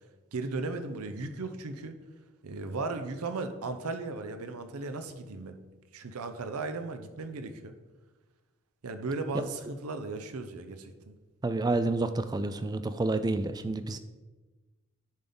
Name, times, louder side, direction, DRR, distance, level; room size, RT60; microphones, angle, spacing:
voice 1, 0.3-1.9 2.4-5.6 5.9-7.7 8.8-11.1, right 3 dB, 85° right, 8 dB, 0.6 m, -36 dB
voice 2, 11.4-14.0, right 2 dB, 20° right, 11 dB, 0.3 m, -29 dB
10.5 x 3.5 x 3.9 m, 1.2 s
head